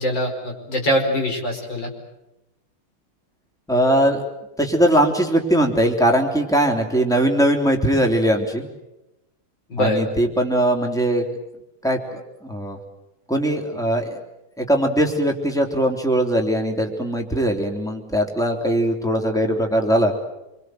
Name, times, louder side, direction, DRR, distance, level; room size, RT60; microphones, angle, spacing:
voice 1, 0.0-1.9 9.7-10.0, equal, 60° left, 2 dB, 5.6 m, -23 dB
voice 2, 3.7-4.2 4.6-8.7 9.8-11.3 11.8-12.8 13.3-14.2 14.6-20.1, right 1 dB, ahead, 2 dB, 3.2 m, -20 dB
27.5 x 23.5 x 7.8 m, 0.93 s
omnidirectional pair, 2.3 m